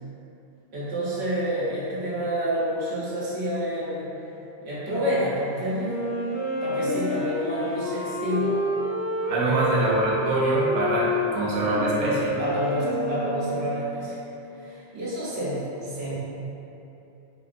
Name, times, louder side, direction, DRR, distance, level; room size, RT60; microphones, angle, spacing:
voice 1, 0.7-4.1 4.6-6.0 6.6-8.6 9.4-9.7 12.4-14.2 14.5-16.1, equal, 90° right, -8 dB, 1.0 m, -28 dB
Wind instrument woodwind instrument, 5.7-14.3, equal, 75° left, 0.8 m, -29 dB
voice 2, 9.3-12.4, right 1 dB, 55° right, -6 dB, 0.6 m, -24 dB
2.7 x 2.5 x 2.4 m, 2.9 s
omnidirectional pair, 1.1 m